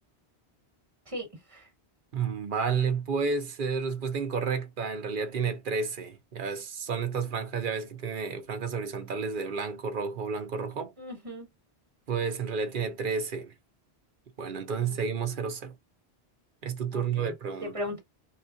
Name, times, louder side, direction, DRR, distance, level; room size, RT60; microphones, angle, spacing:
voice 1, 1.1-1.7 11.0-11.5 14.8-15.0 16.9-17.2 17.6-18.0, left 1 dB, 30° right, 1.7 m, -38 dB
voice 2, 2.1-10.9 12.1-13.5 14.4-15.7 16.6-17.7, right 5 dB, 55° right, 0.8 m, -31 dB
4.2 x 2.3 x 2.5 m
omnidirectional pair, 1.1 m